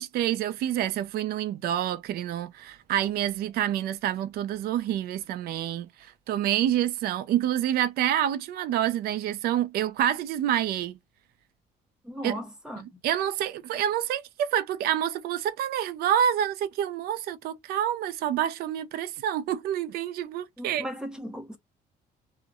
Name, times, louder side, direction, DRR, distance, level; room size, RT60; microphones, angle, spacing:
voice 1, 0.0-11.0 12.2-12.3 12.8-20.8, right 10 dB, 65° right, 0.4 m, -28 dB
voice 2, 12.0-13.0 20.6-21.6, equal, 5° right, 0.7 m, -37 dB
2.7 x 2.1 x 2.3 m
cardioid pair, 110°, 17 cm